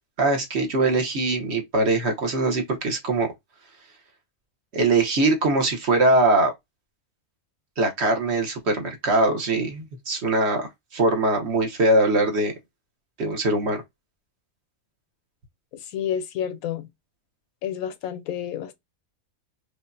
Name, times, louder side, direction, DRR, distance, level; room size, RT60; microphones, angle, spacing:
voice 1, 0.2-3.3 4.7-6.5 7.8-12.5 13.2-13.8, right 2 dB, 55° right, 1.1 m, -22 dB
voice 2, 15.8-16.9 17.6-18.7, left 9 dB, 90° left, 1.1 m, -30 dB
4.9 x 2.1 x 2.5 m
omnidirectional pair, 1.5 m